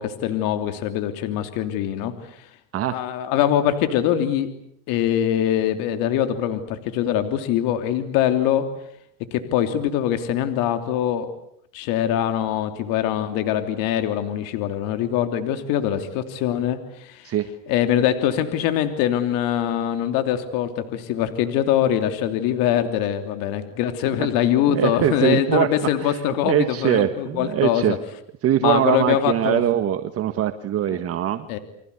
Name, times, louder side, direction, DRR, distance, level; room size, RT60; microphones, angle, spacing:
voice 1, 0.0-2.5 2.9-4.5 4.9-8.7 9.3-11.3 11.7-17.3 17.7-28.0 28.6-29.6 31.5-31.6, left 10 dB, 65° left, 8 dB, 3.1 m, -23 dB
voice 2, 24.7-25.7 26.0-28.0 28.4-31.5, right 11 dB, 40° right, 9 dB, 1.6 m, -22 dB
29.5 x 24.5 x 8.3 m, 0.71 s
supercardioid pair, 115°, 36 cm